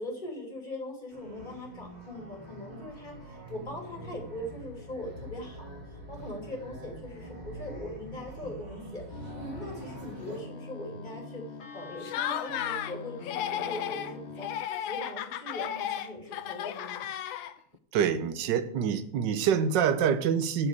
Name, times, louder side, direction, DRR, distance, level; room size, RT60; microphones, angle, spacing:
voice 1, 0.0-17.1, left 1 dB, 20° left, 1 dB, 2.7 m, -41 dB
sound 1, 1.1-10.4, right 1 dB, 20° right, 2.6 m, -44 dB
sound 2, 9.1-14.6, left 4 dB, 35° left, 1.3 m, -44 dB
Laughter, 12.0-13.0 13.2-14.1 14.4-17.8, left 10 dB, 70° left, 1.4 m, -34 dB
voice 2, 17.9-20.7, right 7 dB, 65° right, 11 dB, 1.4 m, -26 dB
11.5 x 4.9 x 8.2 m, 0.65 s
omnidirectional pair, 2.3 m